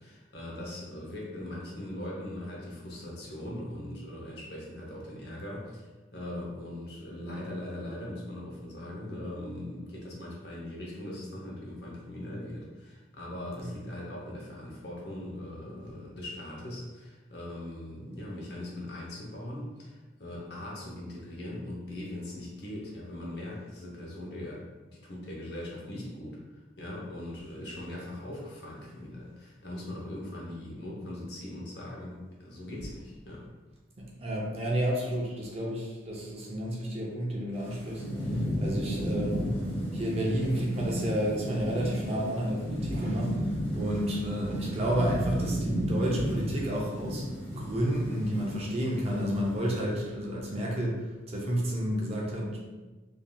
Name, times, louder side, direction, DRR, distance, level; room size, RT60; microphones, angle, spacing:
voice 1, 0.0-33.5, left 1 dB, 55° left, -3 dB, 0.7 m, -40 dB
voice 2, 34.0-38.0 38.6-39.4 39.9-47.2 47.6-52.6, equal, 30° right, -3 dB, 0.4 m, -31 dB
Thunderstorm / Rain, 37.5-49.8, equal, 25° left, 1.3 m, -33 dB
3.1 x 2.6 x 2.2 m, 1.2 s
head